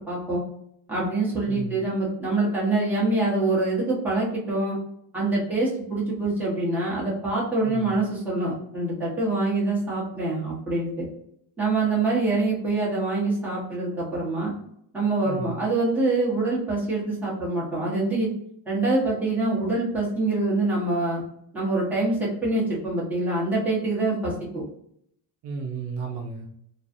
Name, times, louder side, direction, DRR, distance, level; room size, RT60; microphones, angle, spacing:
voice 1, 0.1-0.4 0.9-4.8 5.1-11.1 11.6-14.5 14.9-18.3 18.7-21.2 21.5-24.6, right 2 dB, 5° right, -8 dB, 1.2 m, -25 dB
voice 2, 1.5-1.8 7.6-8.0 15.2-15.6 25.4-26.5, right 5 dB, 65° right, 1 dB, 0.6 m, -33 dB
3.1 x 2.3 x 2.6 m, 0.72 s
cardioid pair, 150°, 46 cm